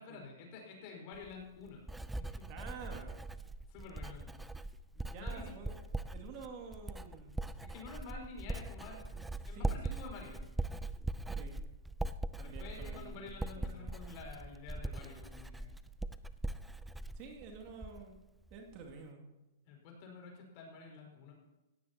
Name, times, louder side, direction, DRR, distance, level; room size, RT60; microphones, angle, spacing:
voice 1, 0.0-2.7 3.7-4.5 4.9-5.5 7.6-10.4 12.4-15.7 19.7-21.3, left 4 dB, 45° left, 1 dB, 5.0 m, -50 dB
Writing, 1.1-18.2 18.5-18.9, right 2 dB, 5° right, 0.5 m, -41 dB
voice 2, 2.5-3.2 5.1-5.8 6.1-7.4 9.5-9.7 11.3-11.6 12.4-13.9 17.1-18.2 18.5-19.3, right 5 dB, 40° right, 2 dB, 2.4 m, -49 dB
17.5 x 16.0 x 2.9 m, 1.0 s
hypercardioid pair, 115°, 0 cm